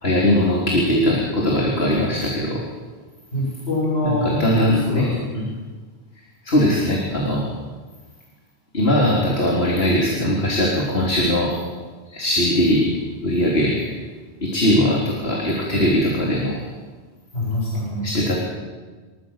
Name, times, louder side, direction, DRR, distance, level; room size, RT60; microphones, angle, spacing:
voice 1, 0.0-2.6 4.0-5.1 5.3-5.5 6.4-7.5 8.7-11.6 12.1-12.9 13.2-13.8 14.4-16.6 18.0-18.4, left 1 dB, 65° left, -3 dB, 3.8 m, -20 dB
voice 2, 3.3-5.3 17.3-18.1, left 1 dB, 80° left, -6 dB, 7.5 m, -24 dB
28.5 x 14.5 x 7.3 m, 1.4 s
omnidirectional pair, 1.1 m